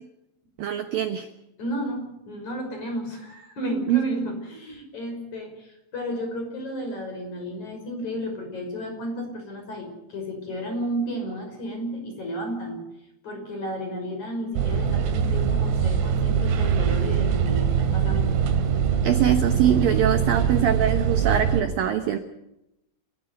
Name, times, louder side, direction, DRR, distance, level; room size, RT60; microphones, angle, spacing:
voice 1, 0.6-1.3 3.9-4.0 19.0-22.2, right 10 dB, 70° right, 8 dB, 2.3 m, -23 dB
voice 2, 1.6-12.8 13.2-18.4, equal, 40° left, 4 dB, 6.8 m, -32 dB
sound 1, 14.6-21.6, right 7 dB, 90° right, 4.4 m, -23 dB
30.0 x 15.0 x 8.2 m, 0.87 s
omnidirectional pair, 5.5 m